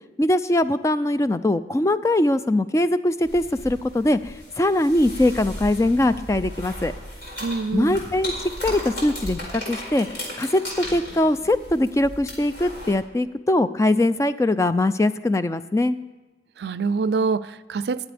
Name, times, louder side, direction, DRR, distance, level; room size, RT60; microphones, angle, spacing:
voice 1, 0.2-6.9 7.7-8.3 8.6-10.1 10.4-16.0, left 1 dB, 15° left, 13 dB, 0.3 m, -21 dB
sound 1, 3.2-12.9, equal, 80° left, 4.6 m, -36 dB
voice 2, 7.4-8.0 16.6-18.1, right 4 dB, 70° right, 16 dB, 0.4 m, -25 dB
21.0 x 8.2 x 3.4 m, 1.2 s
head